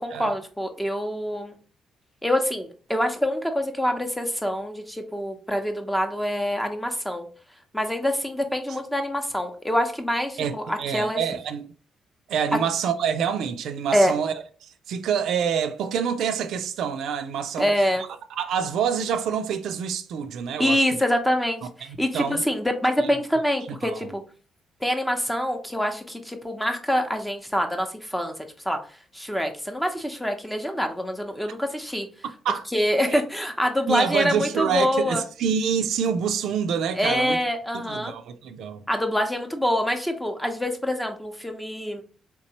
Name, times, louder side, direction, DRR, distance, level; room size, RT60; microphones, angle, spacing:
voice 1, 0.0-1.5 2.2-7.3 7.7-11.2 13.9-14.1 17.6-18.0 20.6-24.2 24.8-28.3 28.6-28.8 29.1-32.1 32.7-35.2 37.0-38.1 38.9-42.0, equal, 5° left, 0.7 m, -25 dB
voice 2, 10.4-11.7 12.3-14.3 14.6-17.7 18.4-21.0 22.1-22.4 23.8-24.1 32.4-32.6 33.9-37.4 37.7-38.8, right 7 dB, 75° right, 0.4 m, -26 dB
3.6 x 2.9 x 2.8 m
cardioid pair, 90°, 0 cm